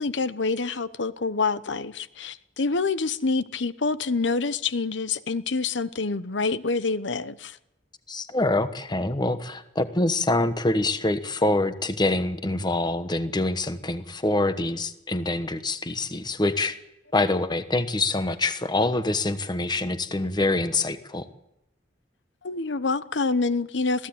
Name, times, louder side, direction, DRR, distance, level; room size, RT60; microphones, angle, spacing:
voice 1, 0.0-7.6 22.4-24.1, left 4 dB, 70° left, 0.9 m, -27 dB
voice 2, 8.1-16.8 17.1-21.3, left 2 dB, 25° left, 1.2 m, -25 dB
21.5 x 15.5 x 8.7 m
head